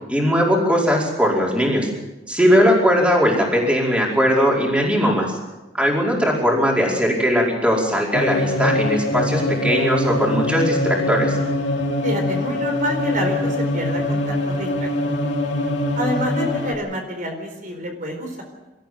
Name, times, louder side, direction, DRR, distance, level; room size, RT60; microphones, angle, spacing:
voice 1, 0.1-1.9 2.3-5.3 5.7-11.4, equal, 5° right, -2 dB, 5.0 m, -19 dB
sound 1, 8.1-16.8, left 1 dB, 70° left, 3.0 m, -23 dB
voice 2, 12.0-15.1 15.9-18.4, equal, 50° right, 3 dB, 4.4 m, -28 dB
26.0 x 14.0 x 7.8 m, 1.1 s
head